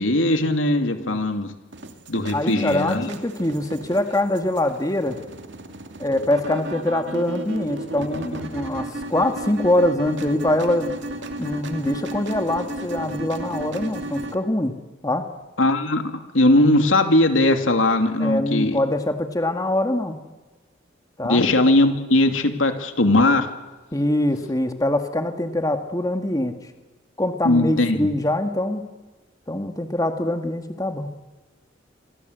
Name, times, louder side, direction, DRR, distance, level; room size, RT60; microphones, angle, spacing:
voice 1, 0.0-1.5 2.1-3.1 15.6-16.0 16.3-18.8 21.3-23.5 27.4-28.2, left 1 dB, 85° left, 6 dB, 2.7 m, -19 dB
sound 1, 1.7-14.3, right 1 dB, 65° right, 2.5 m, -34 dB
voice 2, 2.3-5.2 6.0-10.9 11.4-14.8 15.0-15.3 18.2-20.2 21.2-21.4 23.9-26.5 27.2-28.8 29.5-31.1, left 1 dB, 20° left, 6 dB, 1.8 m, -23 dB
27.5 x 24.5 x 8.1 m, 1.2 s
head